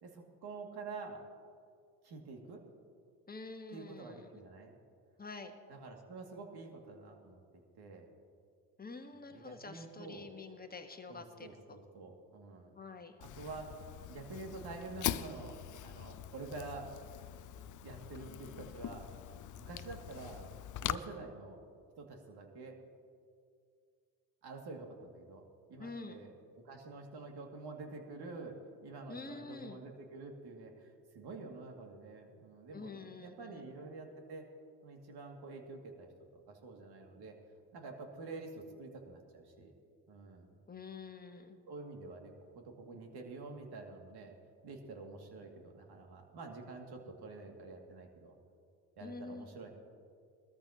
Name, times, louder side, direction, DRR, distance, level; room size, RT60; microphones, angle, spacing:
voice 1, 0.0-1.2 2.0-2.7 3.7-4.7 5.7-7.4 7.8-8.1 9.3-10.3 11.1-12.7 13.4-13.8 14.1-16.9 17.8-19.1 19.6-20.5 20.8-21.6 22.0-22.8 24.4-25.4 25.7-26.3 26.6-34.5 34.8-36.1 36.5-37.4 37.7-39.7 40.1-40.5 41.7-44.3 44.6-48.3 49.0-49.7, right 3 dB, 50° right, 2 dB, 2.4 m, -48 dB
voice 2, 3.3-4.3 5.2-5.5 8.8-11.5 12.7-13.2 25.8-26.2 29.1-29.8 32.7-33.7 40.7-41.6 49.0-49.5, left 3 dB, 20° left, 5 dB, 1.4 m, -47 dB
Fire, 13.2-21.0, left 12 dB, 40° left, 0.6 m, -43 dB
21.0 x 13.5 x 2.9 m, 2.3 s
hypercardioid pair, 70°, 48 cm